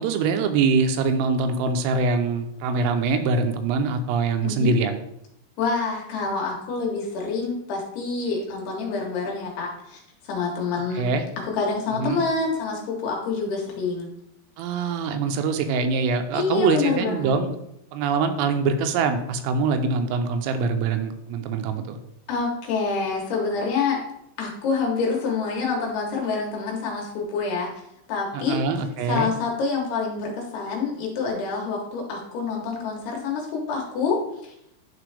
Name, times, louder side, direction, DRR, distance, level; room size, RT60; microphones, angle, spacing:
voice 1, 0.0-5.0 11.0-11.2 12.0-12.2 14.6-17.5 17.9-22.0 28.3-29.3, right 4 dB, 90° right, 7 dB, 3.3 m, -24 dB
voice 2, 4.4-4.7 5.6-11.1 11.4-14.1 16.3-17.3 22.3-24.0 24.4-27.7 28.1-28.6 29.1-34.5, left 4 dB, 70° left, 0 dB, 2.6 m, -27 dB
11.0 x 3.7 x 3.3 m, 0.79 s
omnidirectional pair, 5.8 m